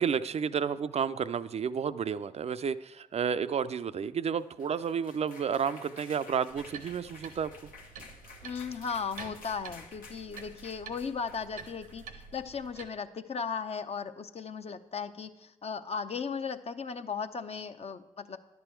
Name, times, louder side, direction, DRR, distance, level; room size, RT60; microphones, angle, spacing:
voice 1, 0.0-7.5, right 7 dB, 50° right, 13 dB, 0.4 m, -31 dB
sound 1, 4.4-12.7, left 4 dB, 80° left, 1.0 m, -52 dB
sound 2, 6.5-12.9, right 6 dB, 80° right, 0.8 m, -49 dB
voice 2, 8.4-18.4, left 6 dB, 45° left, 9 dB, 0.6 m, -36 dB
10.5 x 6.9 x 4.5 m, 0.99 s
hypercardioid pair, 40°, 14 cm